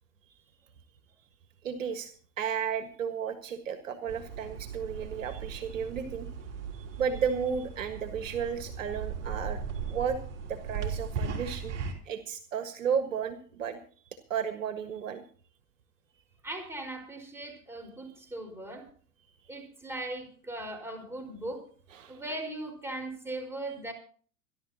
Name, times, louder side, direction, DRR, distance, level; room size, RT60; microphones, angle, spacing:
voice 1, 1.6-2.1 2.4-6.3 6.7-9.6 9.9-10.2 10.5-11.8 12.0-13.8 14.3-15.2 21.9-22.2, right 7 dB, 60° right, 8 dB, 1.8 m, -33 dB
sound 1, 4.1-11.9, right 6 dB, 35° right, 3.4 m, -38 dB
voice 2, 16.4-18.9 19.5-21.6 22.1-23.9, right 1 dB, 5° right, 3 dB, 4.9 m, -39 dB
26.5 x 11.5 x 2.9 m, 0.44 s
figure-of-eight pair, 95°, 45 cm